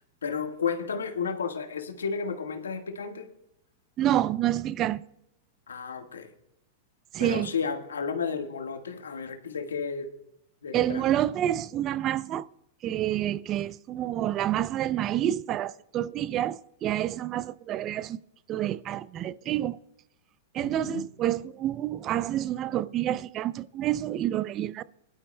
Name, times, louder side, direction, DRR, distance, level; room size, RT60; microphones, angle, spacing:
voice 1, 0.2-3.3 5.7-6.3 7.2-10.1 10.6-11.0 20.6-21.0, left 6 dB, 90° left, 1.5 m, -32 dB
voice 2, 4.0-5.0 7.1-7.5 10.7-12.5 12.8-18.2 18.5-19.8 20.5-24.8, right 12 dB, 35° right, 0.4 m, -28 dB
21.0 x 12.0 x 2.2 m
hypercardioid pair, 115°, 0 cm